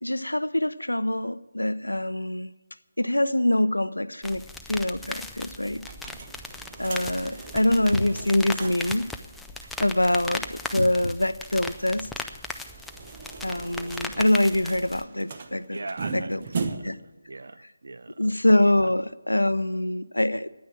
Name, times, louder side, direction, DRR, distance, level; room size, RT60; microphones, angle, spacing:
voice 1, 0.0-2.5 3.0-5.9 6.8-9.1 9.8-12.2 13.4-15.8 16.1-16.4 16.8-17.0 18.2-20.6, left 1 dB, 85° left, 0.6 m, -24 dB
sound 1, 4.2-15.0, left 3 dB, 5° left, 0.4 m, -38 dB
sound 2, 5.8-9.0 9.3-9.4 9.7-9.8 12.5-17.1, right 4 dB, 35° right, 0.9 m, -38 dB
voice 2, 15.7-17.0 17.3-18.2, right 3 dB, 60° right, 0.5 m, -40 dB
9.7 x 9.4 x 8.6 m
figure-of-eight pair, 155°, 0 cm